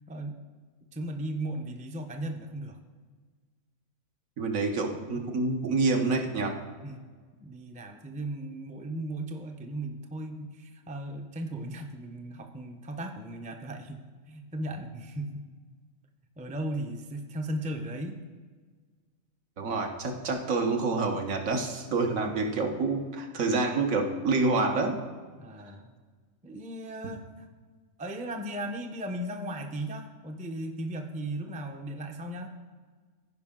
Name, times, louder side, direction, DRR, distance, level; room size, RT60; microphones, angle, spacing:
voice 1, 0.1-0.4 0.9-2.8 6.8-7.0 7.4-15.4 16.4-18.2 25.4-25.9 26.4-27.5 28.0-32.5, right 1 dB, 10° right, 4 dB, 0.4 m, -36 dB
voice 2, 4.4-6.6 19.6-25.0, right 3 dB, 75° right, 3 dB, 1.5 m, -27 dB
15.5 x 5.1 x 3.7 m, 1.5 s
omnidirectional pair, 1.4 m